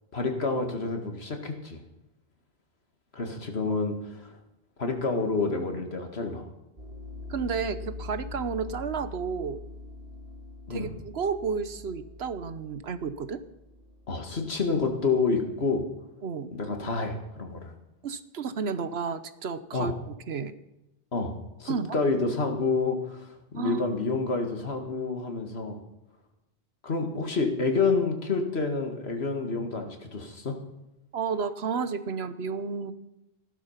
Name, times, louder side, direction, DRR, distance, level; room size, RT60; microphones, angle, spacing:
voice 1, 0.1-1.8 3.1-3.9 4.2-4.3 4.8-6.5 10.7-10.9 14.1-15.8 16.5-17.7 19.7-19.9 21.1-23.3 23.5-25.8 26.8-30.6, left 4 dB, 85° left, 4 dB, 2.3 m, -28 dB
sound 1, 6.8-15.5, left 2 dB, 60° right, 2.1 m, -43 dB
voice 2, 7.3-9.6 10.7-13.4 16.2-16.5 18.0-20.5 21.7-22.0 23.6-23.8 31.1-32.9, right 5 dB, 80° right, 12 dB, 1.2 m, -32 dB
15.5 x 12.0 x 5.7 m, 0.97 s
omnidirectional pair, 1.0 m